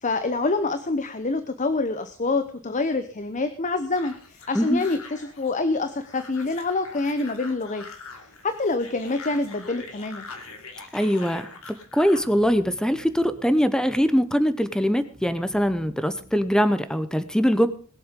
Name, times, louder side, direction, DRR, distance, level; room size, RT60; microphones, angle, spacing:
voice 1, 0.0-7.9 8.4-10.3, left 3 dB, 35° left, 10 dB, 0.9 m, -26 dB
sound 1, 3.9-12.3, left 4 dB, 70° left, 2.8 m, -43 dB
voice 2, 10.9-11.5 11.9-17.7, equal, 5° left, 12 dB, 0.8 m, -22 dB
sound 2, 11.6-16.7, right 2 dB, 25° right, 4.6 m, -52 dB
20.5 x 7.7 x 5.2 m, 0.42 s
head